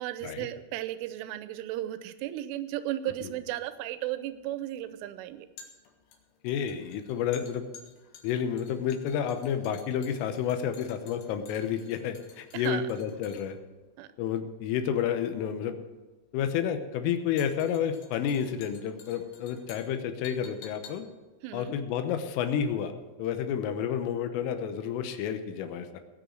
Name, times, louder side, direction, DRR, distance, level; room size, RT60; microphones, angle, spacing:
voice 1, 0.0-5.5 12.5-12.8 14.0-14.1 21.4-21.7, right 13 dB, 85° right, 12 dB, 3.2 m, -35 dB
sound 1, 3.4-22.7 23.0-23.1, left 7 dB, 65° left, 3.4 m, -54 dB
voice 2, 6.4-7.6 8.2-13.6 14.2-15.8 16.3-21.1 21.5-26.0, left 8 dB, 85° left, 8 dB, 3.6 m, -30 dB
19.0 x 6.4 x 7.7 m, 1.2 s
omnidirectional pair, 5.8 m